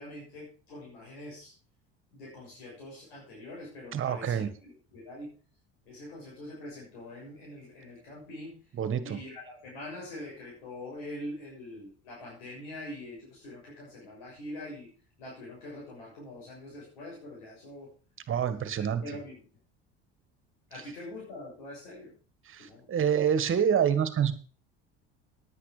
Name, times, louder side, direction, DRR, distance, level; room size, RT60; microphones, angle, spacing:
voice 1, 0.0-1.5 2.1-5.3 5.8-8.6 9.0-14.9 15.2-17.9 18.8-19.4 20.7-22.1 22.6-22.9, left 1 dB, 85° left, -4 dB, 6.6 m, -44 dB
voice 2, 3.9-4.5 8.7-9.2 18.3-19.0 22.5-24.3, right 8 dB, 45° right, 12 dB, 1.8 m, -27 dB
10.0 x 10.0 x 5.1 m, 0.40 s
supercardioid pair, 80°, 29 cm